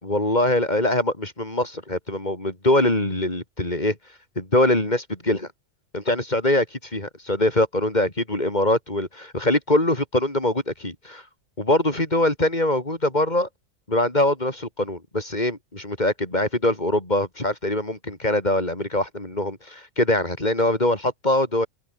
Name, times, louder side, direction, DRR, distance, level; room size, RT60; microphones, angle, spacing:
voice 1, 0.0-4.0 4.4-5.5 5.9-11.2 11.6-13.5 13.9-21.7, left 1 dB, 35° left, 4.5 m, -23 dB
omnidirectional pair, 1.3 m